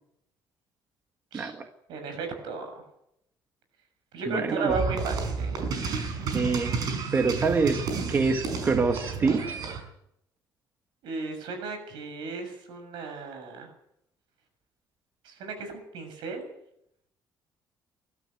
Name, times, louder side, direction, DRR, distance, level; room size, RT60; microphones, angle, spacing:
voice 1, 1.3-1.7 4.3-4.7 6.3-6.7 7.1-7.8 8.1-9.5, right 4 dB, 25° right, 5 dB, 1.6 m, -25 dB
voice 2, 1.9-2.7 4.1-5.6 11.0-13.7 15.2-16.5, right 3 dB, 80° right, 6 dB, 7.2 m, -34 dB
sound 1, 4.7-9.8, right 5 dB, 55° right, 5.5 m, -31 dB
22.0 x 13.0 x 9.4 m, 0.78 s
cardioid pair, 170°, 8 cm